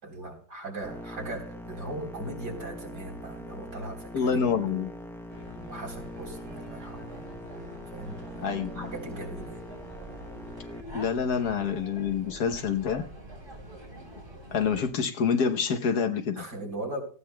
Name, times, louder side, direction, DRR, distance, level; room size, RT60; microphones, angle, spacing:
voice 1, 0.0-4.5 4.8-4.9 5.6-7.4 7.9-8.5 8.7-9.6 16.4-17.0, right 2 dB, 75° right, 0 dB, 4.3 m, -39 dB
sound 1, 0.8-10.8, left 1 dB, 5° left, 0.4 m, -43 dB
voice 2, 4.1-4.9 8.4-8.9 10.9-13.0 14.5-16.4, left 6 dB, 70° left, 6 dB, 1.5 m, -27 dB
sound 2, 5.3-14.8, right 1 dB, 30° right, 4.0 m, -45 dB
18.0 x 15.0 x 2.3 m, 0.41 s
omnidirectional pair, 1.8 m